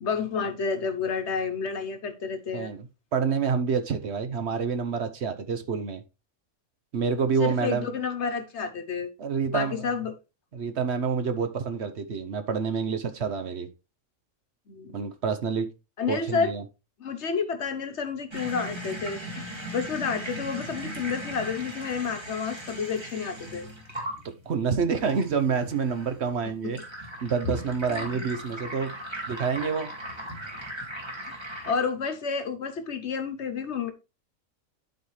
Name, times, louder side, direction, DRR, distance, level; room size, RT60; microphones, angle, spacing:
voice 1, 0.0-2.7 7.4-9.1 9.5-10.1 14.7-15.1 16.0-16.5 17.0-19.4 19.7-23.7 26.6-26.7 27.9-28.1 31.7-33.9, left 5 dB, 60° left, 1.1 m, -30 dB
voice 2, 2.5-6.0 6.9-7.9 9.2-9.9 10.5-13.7 14.9-15.7 16.1-16.6 24.5-26.8 27.2-28.9 29.3-29.9, right 6 dB, 60° right, 1.0 m, -28 dB
sound 1, 18.3-31.7, equal, 20° right, 2.0 m, -38 dB
11.5 x 4.4 x 3.1 m
omnidirectional pair, 1.4 m